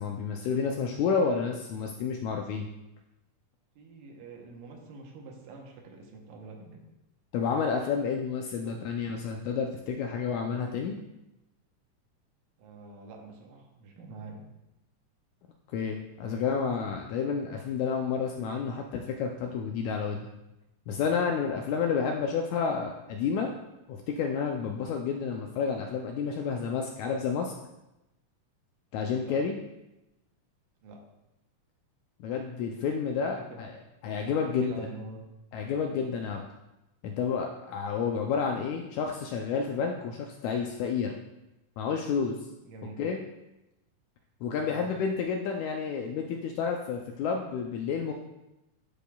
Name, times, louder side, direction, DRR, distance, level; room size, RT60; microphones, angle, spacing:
voice 1, 0.0-2.7 7.3-11.0 15.7-20.3 20.9-23.5 23.9-27.5 28.9-29.6 32.2-33.7 34.0-34.7 35.5-36.4 37.0-41.1 41.8-42.4 43.0-43.2 44.4-48.1, left 6 dB, 80° left, 2 dB, 1.7 m, -30 dB
voice 2, 3.8-6.8 8.6-8.8 12.6-14.4 29.2-29.4 30.8-31.0 33.2-33.6 34.4-35.2 42.6-43.0 44.7-44.9, right 4 dB, 90° right, 1 dB, 2.6 m, -46 dB
11.0 x 5.0 x 2.3 m, 0.95 s
omnidirectional pair, 3.8 m